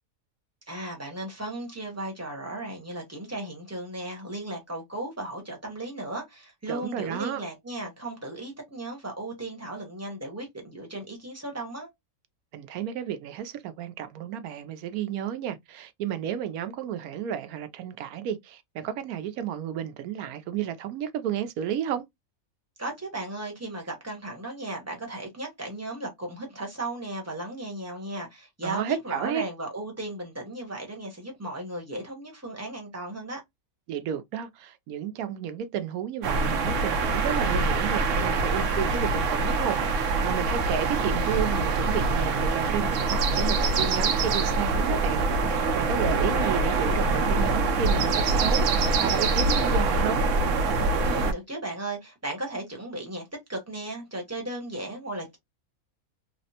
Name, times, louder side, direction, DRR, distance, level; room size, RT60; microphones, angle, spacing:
voice 1, 0.7-11.9 22.8-33.4 51.0-53.2 53.5-55.4, right 1 dB, 15° right, 0.8 m, -36 dB
voice 2, 6.7-7.4 12.5-22.0 28.6-29.4 33.9-50.2, right 9 dB, 85° right, 1.1 m, -32 dB
sound 1, 36.2-51.3, right 3 dB, 65° right, 0.9 m, -24 dB
3.5 x 2.1 x 2.7 m
omnidirectional pair, 1.5 m